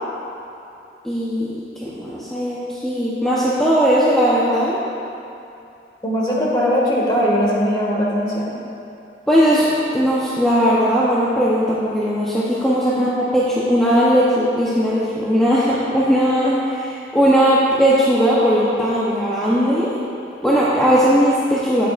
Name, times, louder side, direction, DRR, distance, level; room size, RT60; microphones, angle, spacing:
voice 1, 1.0-1.5 1.8-4.8 9.3-19.9 20.4-21.9, equal, 5° left, -9 dB, 0.9 m, -18 dB
voice 2, 6.0-8.5 12.9-13.0, equal, 25° left, -5 dB, 1.9 m, -20 dB
13.5 x 9.1 x 2.5 m, 2.6 s
head